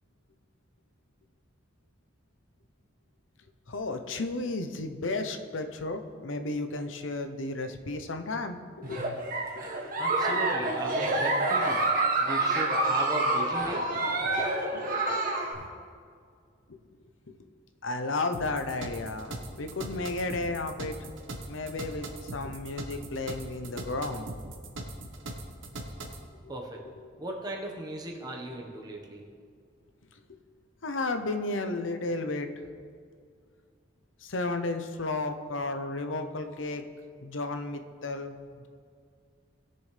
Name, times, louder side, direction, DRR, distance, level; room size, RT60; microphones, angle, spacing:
voice 1, 3.7-9.0 9.6-9.7 14.4-14.5 15.1-15.7 16.7-16.8 17.3-17.4 17.8-21.0 21.5-24.3 26.4-26.5 30.3-30.4 30.8-32.5 34.2-36.8 37.2-38.7, left 2 dB, 90° left, 7 dB, 0.8 m, -33 dB
Giggle, 8.8-15.5, right 2 dB, 45° right, 1.6 m, -27 dB
voice 2, 10.0-11.8 12.2-13.8 26.5-26.8 27.2-29.2, right 1 dB, 20° right, -1 dB, 1.2 m, -37 dB
sound 1, 18.3-26.2, right 1 dB, 90° right, 1.2 m, -40 dB
20.0 x 6.9 x 3.4 m, 2.2 s
head